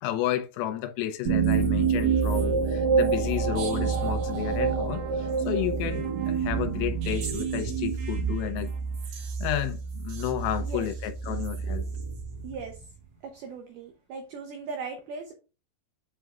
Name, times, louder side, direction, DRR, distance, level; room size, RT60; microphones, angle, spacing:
voice 1, 0.0-8.7 9.1-11.9, left 12 dB, 90° left, 3.6 m, -32 dB
sound 1, 1.3-12.8, right 5 dB, 70° right, 2.0 m, -28 dB
voice 2, 12.4-12.8 13.2-15.3, right 4 dB, 85° right, 2.2 m, -38 dB
9.1 x 4.7 x 2.4 m
omnidirectional pair, 5.8 m